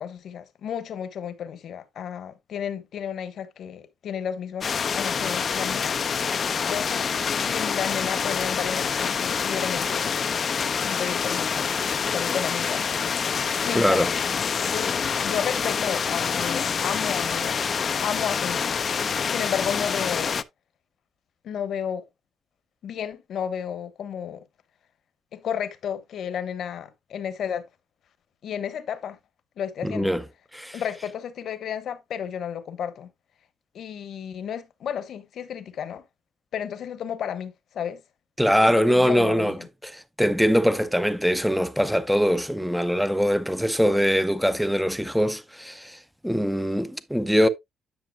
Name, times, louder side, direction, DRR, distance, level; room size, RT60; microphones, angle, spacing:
voice 1, 0.0-4.7 4.9-6.0 6.4-10.1 10.8-11.7 12.1-13.1 13.4-14.1 14.6-17.6 18.0-18.8 19.3-20.4 21.4-22.1 22.8-24.4 25.3-27.7 28.4-29.2 29.6-30.1 30.7-33.1 33.7-36.0 36.5-38.0 38.6-39.6, left 8 dB, 70° left, 1.1 m, -32 dB
sound 1, 4.6-20.4, left 6 dB, 45° left, 0.5 m, -26 dB
voice 2, 13.7-14.1 29.8-30.2 30.5-30.8 38.4-39.6 39.8-47.5, equal, ahead, 0.6 m, -22 dB
10.5 x 6.1 x 2.2 m
cardioid pair, 90°, 0 cm